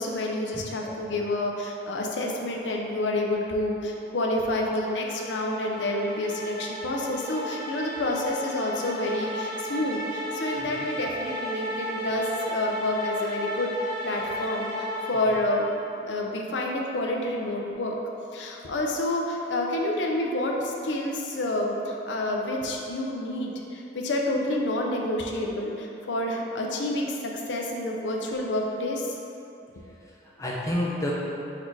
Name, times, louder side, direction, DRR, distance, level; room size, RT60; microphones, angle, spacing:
voice 1, 0.0-13.7 14.0-15.6 16.0-18.0 18.3-21.8 22.1-29.2, left 1 dB, 80° left, 0 dB, 0.5 m, -29 dB
voice 2, 0.5-1.0 10.6-10.9 15.1-15.6 19.4-19.5 21.7-21.9 30.1-31.1, left 1 dB, 15° left, -5 dB, 0.5 m, -32 dB
sound 1, 4.5-15.8, equal, 25° right, 1.2 m, -34 dB
4.2 x 2.6 x 4.5 m, 2.9 s
head